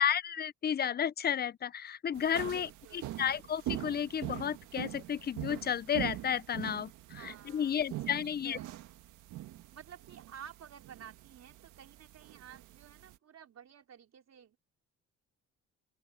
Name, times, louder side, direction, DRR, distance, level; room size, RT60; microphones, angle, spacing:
voice 1, 0.0-2.7 3.2-8.6, left 8 dB, 35° left, 0.6 m, -32 dB
sound 1, 2.1-13.2, right 14 dB, 90° right, 1.6 m, -43 dB
voice 2, 2.3-3.2 7.1-7.8 8.2-8.8 9.7-14.6, right 8 dB, 60° right, 4.5 m, -52 dB
open air
cardioid pair, 90°, 30 cm